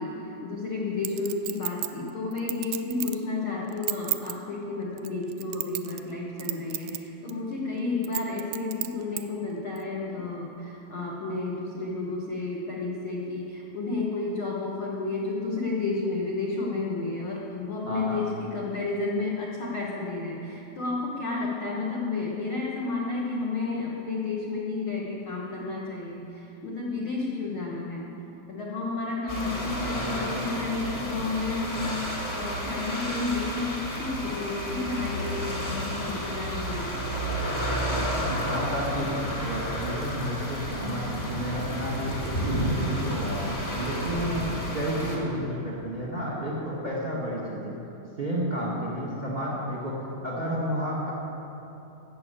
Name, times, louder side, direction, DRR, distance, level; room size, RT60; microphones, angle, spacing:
voice 1, 0.0-28.0 28.5-37.0, left 3 dB, 80° left, -3 dB, 1.1 m, -31 dB
Chink clink, 1.0-3.2 3.7-4.3 5.0-6.1 6.4-7.0 7.3-7.4 8.0-9.2 9.8-9.9, right 17 dB, 85° right, 2.4 m, -32 dB
voice 2, 17.8-18.2 37.7-43.5 43.7-47.8 48.2-51.1, equal, 35° right, -5 dB, 1.0 m, -31 dB
sound 1, 29.3-45.2, equal, 25° left, 1.2 m, -31 dB
13.5 x 6.8 x 8.5 m, 2.9 s
omnidirectional pair, 4.3 m